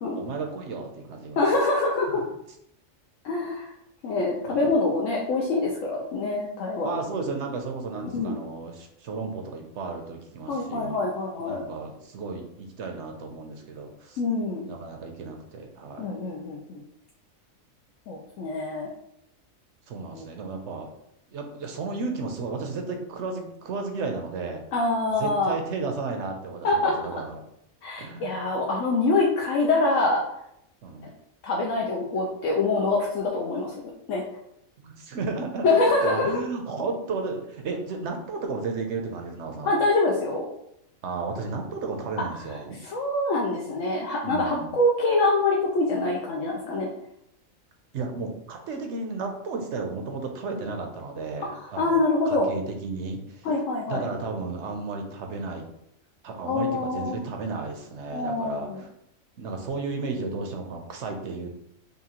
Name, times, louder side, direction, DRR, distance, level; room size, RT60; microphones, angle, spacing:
voice 1, 0.1-1.4 4.4-4.7 6.8-11.0 11.4-14.2 14.6-16.1 19.9-20.9 21.3-24.6 25.2-27.4 28.0-28.3 30.8-31.1 34.8-39.8 41.0-42.8 44.2-44.7 47.9-53.5 53.9-55.7 56.2-58.9 59.4-61.6, right 4 dB, 65° right, 3 dB, 0.9 m, -33 dB
voice 2, 1.4-2.3 3.2-3.7 4.0-7.0 8.1-8.4 10.5-11.6 14.2-14.7 16.0-16.8 18.1-18.9 20.1-20.2 24.7-25.5 26.6-27.0 27.8-30.2 31.4-33.7 34.1-34.2 35.6-36.4 39.7-40.4 42.5-46.9 51.6-52.5 53.4-54.0 56.4-57.2 58.1-58.8, left 2 dB, 70° left, -2 dB, 0.9 m, -25 dB
5.4 x 2.3 x 2.9 m, 0.77 s
omnidirectional pair, 1.4 m